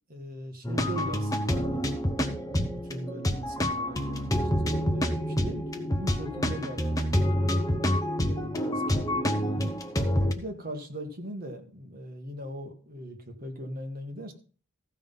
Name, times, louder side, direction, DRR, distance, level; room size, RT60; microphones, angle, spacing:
voice 1, 0.1-1.9 2.5-7.5 8.2-9.7 10.3-14.3, equal, 45° right, 4 dB, 1.7 m, -40 dB
sound 1, 0.6-10.3, equal, 15° left, 0.9 m, -27 dB
14.5 x 5.5 x 5.6 m, 0.40 s
head